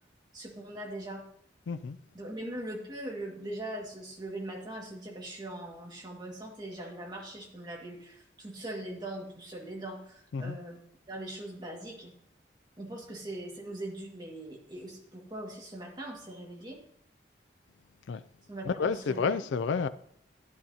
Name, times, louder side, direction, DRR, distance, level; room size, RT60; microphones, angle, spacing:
voice 1, 0.3-1.2 2.1-10.8 11.1-12.1 12.8-16.8 18.5-19.3, right 1 dB, 25° right, 1.8 m, -41 dB
voice 2, 1.7-2.0 10.3-10.6 18.1-18.2 18.7-19.9, left 5 dB, 90° left, 0.4 m, -30 dB
11.5 x 10.0 x 2.8 m
head